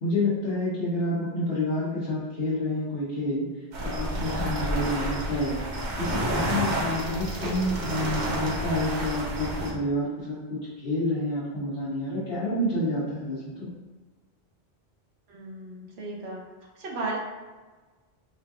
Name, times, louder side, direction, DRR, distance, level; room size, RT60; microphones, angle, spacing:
voice 1, 0.0-3.5 3.8-5.6 6.0-13.7, left 1 dB, 70° left, -9 dB, 1.0 m, -29 dB
sound 1, 3.7-9.7, right 1 dB, 50° right, 0.7 m, -30 dB
voice 2, 15.3-16.4 16.8-17.2, right 2 dB, 85° right, -2 dB, 1.0 m, -34 dB
4.3 x 2.6 x 2.3 m, 1.3 s
omnidirectional pair, 1.0 m